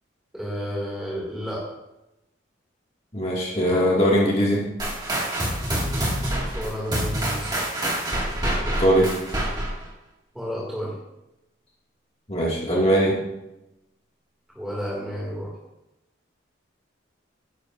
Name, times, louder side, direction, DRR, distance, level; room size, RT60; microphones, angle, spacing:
voice 1, 0.3-1.7 6.5-7.5 10.3-10.9 14.5-15.5, equal, 5° right, -6 dB, 2.3 m, -31 dB
voice 2, 3.1-4.7 8.8-9.1 12.3-13.2, equal, 30° left, -4 dB, 2.0 m, -20 dB
sound 1, 4.8-9.9, right 1 dB, 20° right, 2.0 m, -26 dB
12.0 x 9.8 x 2.6 m, 0.91 s
head